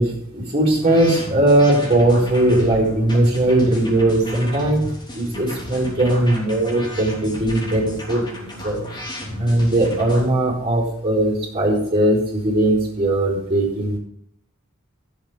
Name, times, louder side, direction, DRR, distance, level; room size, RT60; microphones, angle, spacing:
voice 1, 0.0-4.8 5.1-8.2 8.6-8.9 9.4-14.0, right 1 dB, 30° right, -6 dB, 4.5 m, -19 dB
sound 1, 0.7-10.3, left 1 dB, 20° left, 3.5 m, -33 dB
13.5 x 7.4 x 5.2 m, 0.73 s
head